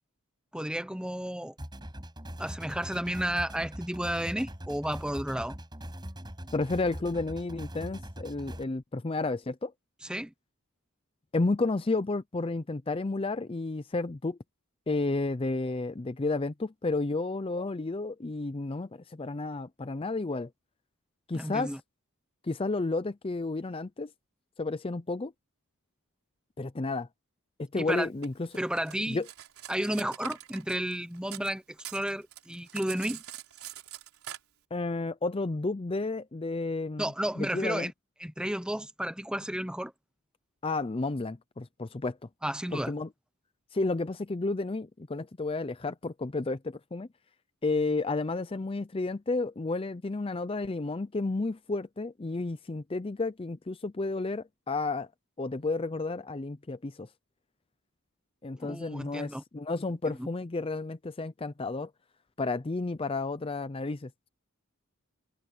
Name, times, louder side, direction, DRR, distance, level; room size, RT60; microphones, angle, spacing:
voice 1, 0.5-1.5 2.4-5.5 10.0-10.3 21.3-21.8 27.7-28.1 28.6-29.2 29.7-31.6 31.9-33.2 37.0-37.9 38.2-39.9 42.4-42.9 58.6-59.4 60.1-60.2, right 1 dB, 5° right, 0.8 m, -32 dB
sound 1, 1.6-8.6, equal, 20° right, 7.2 m, -42 dB
voice 2, 6.5-9.7 11.3-14.4 14.9-20.5 21.3-21.8 22.4-24.1 24.6-25.3 26.6-27.1 27.6-28.5 29.1-29.3 34.7-37.9 40.6-42.2 42.7-43.1 43.7-47.1 47.6-55.1 55.4-57.1 58.4-61.9 62.4-64.1, left 3 dB, 25° left, 0.5 m, -32 dB
Cutlery silverware, 28.2-31.5 31.8-34.4, right 11 dB, 80° right, 3.8 m, -44 dB
head